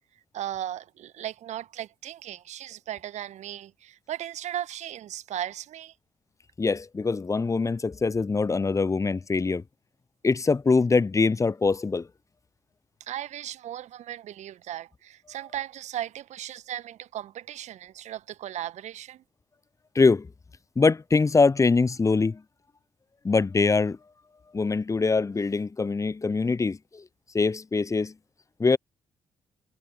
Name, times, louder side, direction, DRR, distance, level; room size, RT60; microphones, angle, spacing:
voice 1, 0.3-5.9 13.0-19.2, right 12 dB, 55° right, 1.4 m, -36 dB
voice 2, 6.6-9.6 10.2-12.1 19.9-20.3 20.8-22.4 23.2-24.0 24.5-27.0 27.3-28.1 28.6-28.8, left 4 dB, 25° left, 0.8 m, -23 dB
figure-of-eight pair, 40°, 14 cm